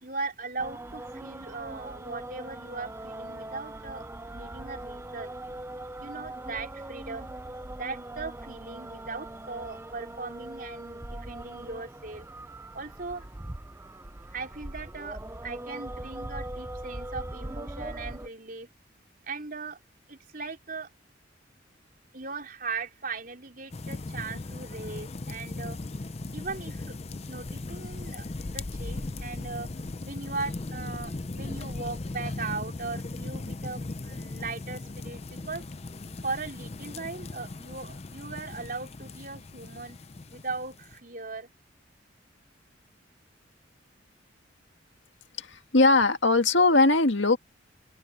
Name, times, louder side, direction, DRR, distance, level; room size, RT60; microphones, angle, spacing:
voice 1, 0.0-4.1 4.3-5.4 6.0-7.3 7.8-12.3 12.7-13.3 14.3-18.7 19.2-19.8 20.1-20.9 22.1-25.8 26.3-27.0 27.3-29.7 30.1-35.6 36.2-40.0 40.3-41.5, right 4 dB, 50° right, 4.5 m, -38 dB
sound 1, 0.6-18.3, right 1 dB, 15° right, 0.6 m, -41 dB
sound 2, 23.7-41.0, left 2 dB, 35° left, 0.6 m, -38 dB
voice 2, 45.4-47.4, left 3 dB, 75° left, 1.9 m, -20 dB
open air
head